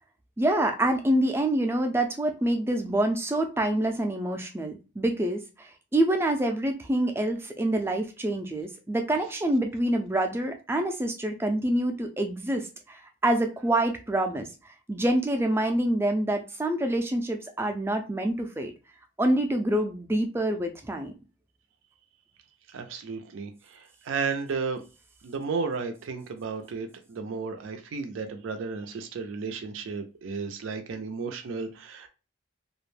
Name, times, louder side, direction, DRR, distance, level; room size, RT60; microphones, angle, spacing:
voice 1, 0.4-14.5 14.9-18.7 19.2-21.1, right 1 dB, 10° right, 4 dB, 0.3 m, -26 dB
voice 2, 22.7-24.8 25.2-32.1, right 4 dB, 85° right, 7 dB, 0.4 m, -33 dB
2.3 x 2.1 x 3.2 m, 0.31 s
head